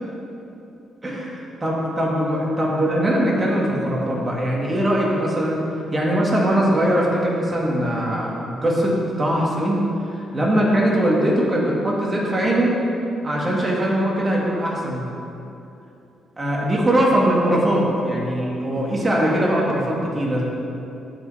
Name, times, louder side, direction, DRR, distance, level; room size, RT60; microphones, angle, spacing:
voice 1, 1.0-5.6 5.9-9.8 10.3-12.7 13.2-15.1 16.4-20.4, right 1 dB, 25° right, -4 dB, 2.0 m, -21 dB
13.5 x 5.4 x 4.3 m, 2.8 s
cardioid pair, 100°, 0 cm